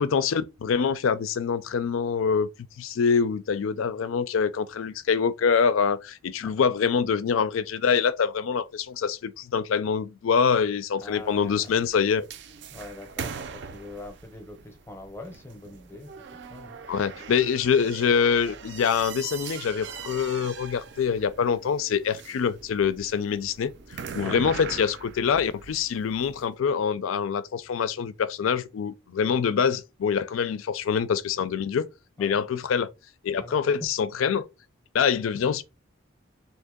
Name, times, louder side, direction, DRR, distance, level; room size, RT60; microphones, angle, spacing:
voice 1, 0.0-2.5 2.8-12.3 16.9-31.9 32.2-32.9 33.2-34.5 34.9-35.6, left 6 dB, 85° left, 0.4 m, -25 dB
voice 2, 11.0-11.8 12.7-16.1 16.5-17.1 24.2-24.5 32.2-32.4 33.4-33.8, left 2 dB, 10° left, 0.6 m, -43 dB
sound 1, 11.0-26.4, right 6 dB, 60° right, 0.4 m, -41 dB
2.9 x 2.6 x 3.6 m
head